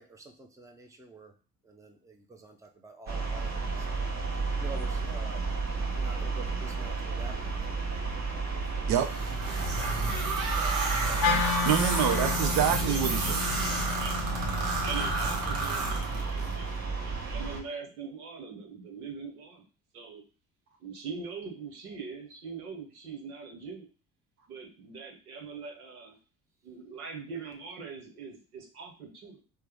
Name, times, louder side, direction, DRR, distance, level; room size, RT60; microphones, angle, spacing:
voice 1, 0.0-1.3 1.6-4.1 4.6-5.5 5.9-8.9 9.7-10.1 11.0-11.7, right 2 dB, 5° right, 5 dB, 0.6 m, -48 dB
sound 1, 3.1-17.6, right 4 dB, 40° right, 1.1 m, -32 dB
sound 2, 9.0-16.5, right 2 dB, 75° right, 1.2 m, -31 dB
Wind instrument woodwind instrument, 11.2-15.5, left 7 dB, 50° left, 0.6 m, -33 dB
voice 2, 11.6-13.5, right 9 dB, 55° right, 8 dB, 0.7 m, -27 dB
voice 3, 12.7-14.1 14.8-16.7 17.0-19.6 19.9-20.2 20.8-23.9 24.4-26.2 26.6-29.4, right 5 dB, 90° right, 2 dB, 0.9 m, -42 dB
4.4 x 2.1 x 3.3 m, 0.35 s
hypercardioid pair, 60°, 43 cm